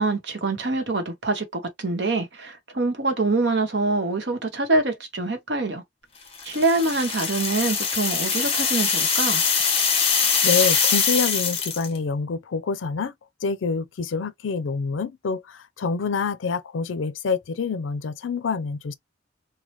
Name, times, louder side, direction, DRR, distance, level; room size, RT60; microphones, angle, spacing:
voice 1, 0.0-5.8 6.4-9.4, right 2 dB, 65° right, 1.0 m, -25 dB
sound 1, 6.4-12.0, left 6 dB, 30° left, 1.0 m, -23 dB
voice 2, 10.1-13.1 13.4-18.9, left 5 dB, 90° left, 0.5 m, -27 dB
3.2 x 2.2 x 2.9 m
head